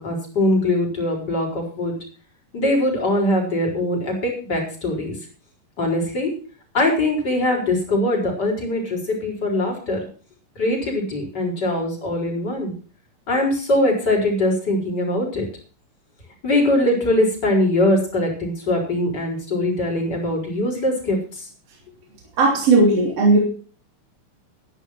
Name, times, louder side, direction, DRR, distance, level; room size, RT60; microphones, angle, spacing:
voice 1, 0.0-2.0 2.5-5.1 5.8-6.3 6.7-10.0 10.6-12.7 13.3-15.5 16.4-21.4, left 1 dB, 30° left, 0 dB, 4.9 m, -22 dB
voice 2, 22.4-23.4, right 3 dB, 45° right, -1 dB, 4.1 m, -16 dB
12.0 x 10.5 x 5.9 m, 0.39 s
omnidirectional pair, 3.8 m